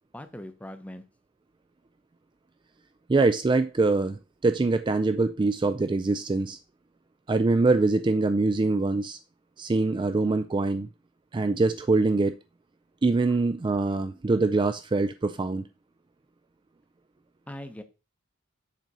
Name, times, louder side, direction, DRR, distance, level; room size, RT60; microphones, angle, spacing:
voice 1, 0.1-1.0 17.5-17.8, left 1 dB, 5° left, 0.7 m, -40 dB
voice 2, 3.1-6.6 7.3-9.2 9.6-10.9 11.3-12.3 13.0-15.7, right 3 dB, 25° right, 0.3 m, -24 dB
7.5 x 3.9 x 5.3 m
head